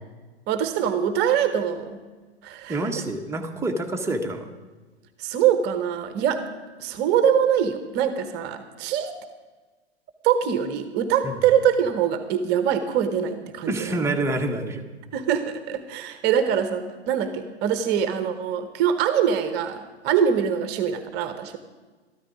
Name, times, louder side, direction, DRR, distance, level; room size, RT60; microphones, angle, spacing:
voice 1, 0.5-2.0 2.4-2.8 5.2-6.4 6.8-9.1 10.2-14.0 15.1-21.6, right 8 dB, 30° right, 10 dB, 1.0 m, -23 dB
voice 2, 2.7-4.5 11.2-11.4 13.7-14.8, right 2 dB, 10° right, 3 dB, 1.1 m, -27 dB
13.5 x 13.0 x 4.9 m, 1.3 s
figure-of-eight pair, 105°, 33 cm